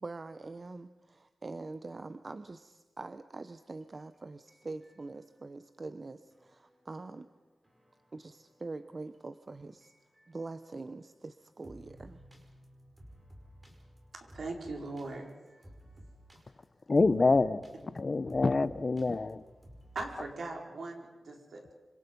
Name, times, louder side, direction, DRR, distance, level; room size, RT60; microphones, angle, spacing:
voice 1, 0.0-7.3 8.1-9.9 10.3-12.2, right 3 dB, 40° right, 11 dB, 0.8 m, -44 dB
sound 1, 3.5-5.4 6.3-10.7 11.6-20.3, equal, 20° right, 5.1 m, -56 dB
voice 2, 14.1-15.2 19.9-21.7, right 3 dB, 70° right, 2 dB, 4.8 m, -40 dB
voice 3, 16.9-17.6 18.0-19.4, left 3 dB, 40° left, 16 dB, 0.8 m, -26 dB
26.0 x 25.5 x 5.4 m, 1.2 s
wide cardioid pair, 85°, 0 cm